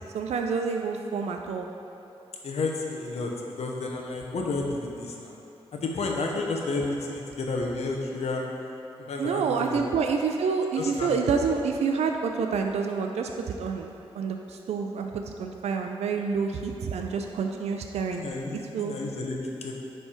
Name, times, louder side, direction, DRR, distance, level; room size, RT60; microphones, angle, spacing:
voice 1, 0.1-1.7 9.2-18.3 18.7-18.9, right 5 dB, 85° right, 3 dB, 0.4 m, -28 dB
voice 2, 2.4-3.3 3.6-5.3 5.7-8.4 9.0-9.8 10.8-11.1 18.1-19.7, left 3 dB, 80° left, 0 dB, 0.9 m, -31 dB
10.0 x 3.4 x 4.4 m, 2.8 s
cardioid pair, 70°, 11 cm